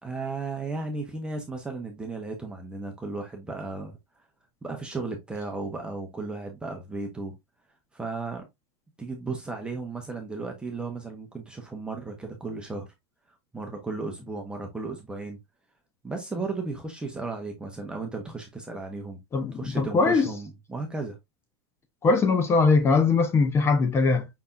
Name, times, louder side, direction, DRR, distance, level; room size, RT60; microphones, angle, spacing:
voice 1, 0.0-4.0 4.6-7.3 7.9-8.4 9.0-12.9 13.5-15.4 16.0-19.2 19.5-21.2, right 3 dB, 5° right, 0.8 m, -35 dB
voice 2, 19.3-20.3 22.0-24.3, left 4 dB, 20° left, 0.6 m, -21 dB
5.7 x 3.4 x 2.4 m
supercardioid pair, 150°, 14 cm